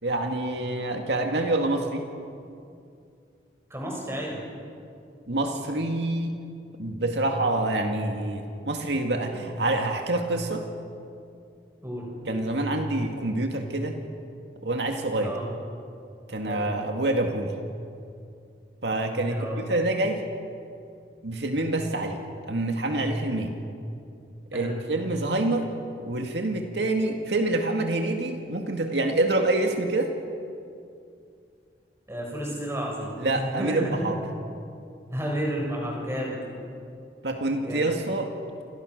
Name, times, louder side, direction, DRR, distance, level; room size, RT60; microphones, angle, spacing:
voice 1, 0.0-2.0 5.3-6.4 6.8-10.6 12.3-14.0 14.6-15.4 16.3-17.5 18.8-20.2 21.2-22.2 22.5-23.6 24.5-25.7 26.0-30.1 33.2-34.2 37.2-38.3, right 2 dB, 80° right, 3 dB, 2.1 m, -26 dB
voice 2, 3.7-4.4 11.8-12.1 15.2-15.4 16.5-16.7 19.3-19.6 24.5-24.8 32.1-34.1 35.1-36.4 37.6-37.9, equal, 15° right, -2 dB, 7.1 m, -31 dB
28.5 x 27.0 x 6.6 m, 2.5 s
head